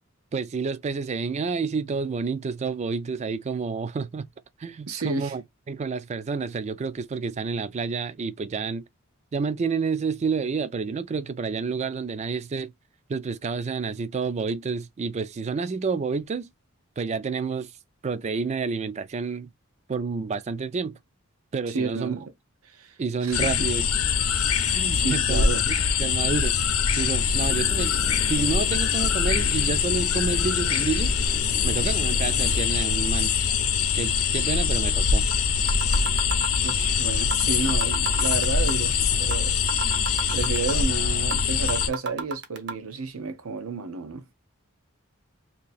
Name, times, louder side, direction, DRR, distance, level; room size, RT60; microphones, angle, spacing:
voice 1, 0.3-4.3 4.6-5.4 5.7-8.9 9.3-12.7 13.1-16.5 17.0-17.7 18.0-19.5 19.9-21.0 21.5-22.2 23.0-23.9 24.7-26.6 27.0-27.9 28.3-31.2 31.6-33.3 33.9-35.3, right 5 dB, 30° right, 0.3 m, -29 dB
voice 2, 4.9-5.3 21.6-22.3 22.7-23.7 24.9-25.7 36.6-39.6 40.3-44.3, right 4 dB, 90° right, 0.8 m, -31 dB
sound 1, 23.3-41.9, left 6 dB, 90° left, 0.7 m, -23 dB
sound 2, 27.4-32.6, left 3 dB, 35° left, 0.4 m, -38 dB
sound 3, 35.3-35.4 35.7-36.9 37.3-37.4 37.7-38.9 39.3-39.4 39.7-40.9 41.3-41.4 41.7-42.7, right 4 dB, 55° right, 0.8 m, -31 dB
2.8 x 2.7 x 4.0 m
head